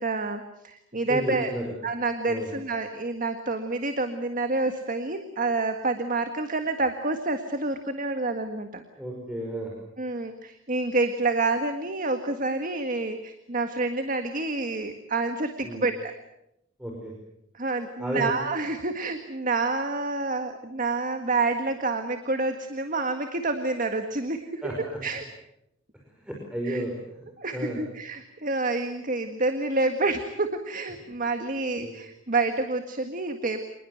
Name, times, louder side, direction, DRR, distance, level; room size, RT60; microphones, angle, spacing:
voice 1, 0.0-1.5 1.8-8.8 10.0-16.1 17.5-25.2 26.6-26.8 27.4-33.6, right 3 dB, 40° right, 7 dB, 1.7 m, -28 dB
voice 2, 1.1-1.7 2.3-2.5 9.0-9.7 15.6-15.8 16.8-17.1 18.0-18.3 24.6-25.0 26.2-27.2 27.5-27.8 31.8-31.9, equal, 5° right, -1 dB, 5.3 m, -32 dB
26.5 x 20.5 x 8.0 m, 0.81 s
head